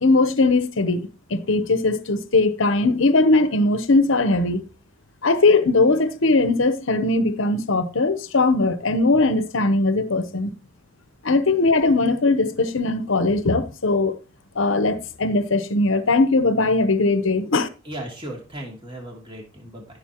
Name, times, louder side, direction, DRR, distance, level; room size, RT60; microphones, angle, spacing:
voice 1, 0.0-4.6 5.2-10.5 11.2-14.2 14.6-17.7, left 3 dB, 65° left, 0.9 m, -20 dB
voice 2, 17.8-19.9, right 1 dB, 25° right, 2.8 m, -36 dB
14.5 x 6.6 x 3.0 m
head